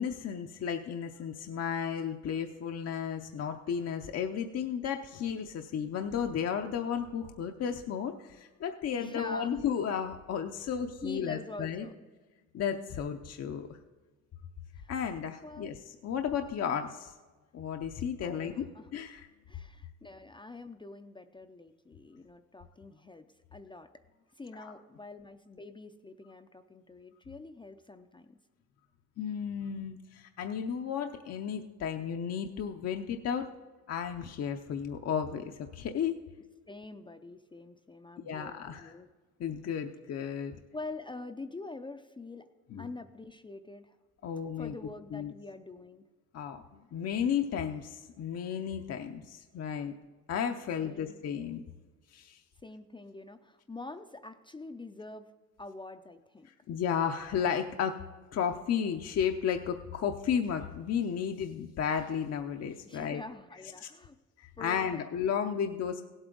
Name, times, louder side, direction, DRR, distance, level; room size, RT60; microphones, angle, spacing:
voice 1, 0.0-11.9 12.5-13.7 14.9-15.8 16.0-17.1 17.5-19.3 24.6-24.7 29.2-33.5 33.9-36.1 38.2-38.9 39.4-40.6 42.7-42.8 44.2-44.7 45.1-45.3 46.3-46.6 46.9-49.9 50.3-51.6 52.1-52.4 56.7-58.0 58.3-63.2 64.4-66.0, left 7 dB, 55° left, 5 dB, 0.6 m, -33 dB
voice 2, 9.0-9.7 11.0-11.9 14.8-14.9 15.4-15.8 18.2-18.9 19.5-23.9 24.3-28.4 36.7-39.1 40.7-42.5 42.8-44.0 44.6-46.0 50.8-51.3 52.6-55.3 55.6-56.5 62.8-64.2 64.6-65.0, left 3 dB, 15° left, 7 dB, 0.5 m, -45 dB
16.5 x 8.0 x 3.9 m, 1.3 s
cardioid pair, 90°, 30 cm